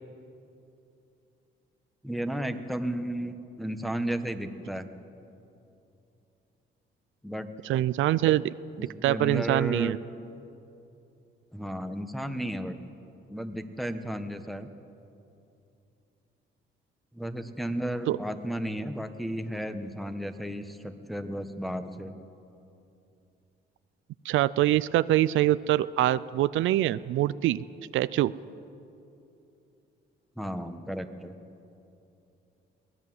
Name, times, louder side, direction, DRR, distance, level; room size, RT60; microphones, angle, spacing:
voice 1, 2.0-4.9 7.2-7.5 9.0-9.9 11.5-12.8 13.3-14.7 17.1-22.1 30.4-31.4, right 1 dB, ahead, 7 dB, 1.4 m, -33 dB
voice 2, 7.6-10.0 18.1-18.2 24.2-27.6 27.9-28.3, right 14 dB, 80° right, 16 dB, 0.5 m, -24 dB
23.0 x 18.0 x 7.9 m, 2.8 s
cardioid pair, 90°, 20 cm